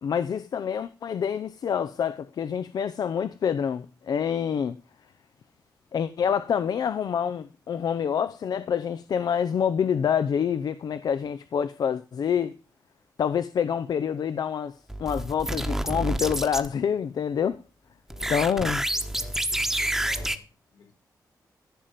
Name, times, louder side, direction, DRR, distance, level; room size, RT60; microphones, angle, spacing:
voice 1, 0.0-4.8 5.9-12.5 13.2-14.7 15.0-17.5 18.3-18.8, left 7 dB, 70° left, 0.7 m, -27 dB
sound 1, 14.9-16.7 18.1-20.4, right 1 dB, 5° right, 1.1 m, -28 dB
voice 2, 18.1-18.7 18.9-20.9, left 4 dB, 90° left, 4.5 m, -50 dB
15.0 x 7.5 x 5.1 m
wide cardioid pair, 135°, 7 cm